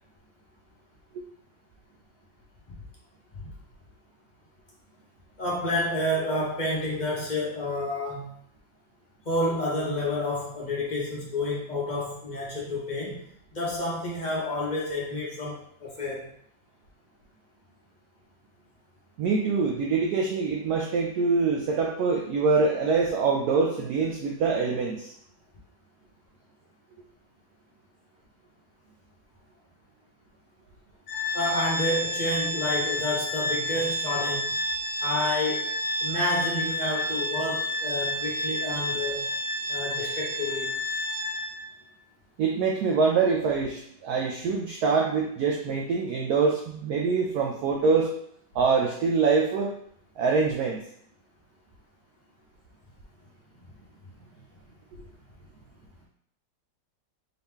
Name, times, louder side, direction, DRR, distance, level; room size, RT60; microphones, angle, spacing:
voice 1, 5.4-8.3 9.2-13.2 13.5-16.2 31.3-34.5 35.0-35.7 36.0-39.3 39.7-40.7, left 1 dB, 45° left, -4 dB, 0.6 m, -29 dB
voice 2, 19.2-25.1 42.4-48.1 48.5-49.7 50.2-50.8, right 4 dB, 70° right, 0 dB, 1.0 m, -24 dB
Organ, 31.1-41.7, left 1 dB, 65° left, 1.1 m, -30 dB
3.9 x 2.9 x 3.5 m, 0.67 s
omnidirectional pair, 2.0 m